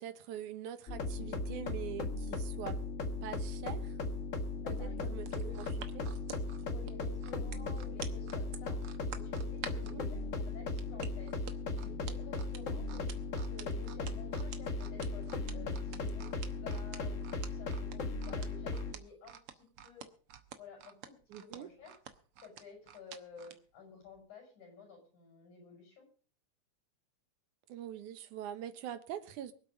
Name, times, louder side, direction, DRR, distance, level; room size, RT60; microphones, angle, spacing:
voice 1, 0.0-2.8 3.2-4.0 4.7-5.6 5.9-6.1 9.7-10.0 21.3-21.7 27.7-29.5, right 11 dB, 90° right, 2.6 m, -44 dB
sound 1, 0.9-18.9, left 3 dB, 50° left, 0.9 m, -37 dB
voice 2, 4.6-5.2 5.4-5.6 6.6-8.8 9.1-11.3 11.7-20.1 20.6-22.0 22.4-26.1, left 5 dB, 80° left, 7.8 m, -53 dB
sound 2, 5.2-10.0 10.8-23.6 24.0-24.2, right 9 dB, 60° right, 1.8 m, -48 dB
23.5 x 8.3 x 4.9 m
omnidirectional pair, 3.4 m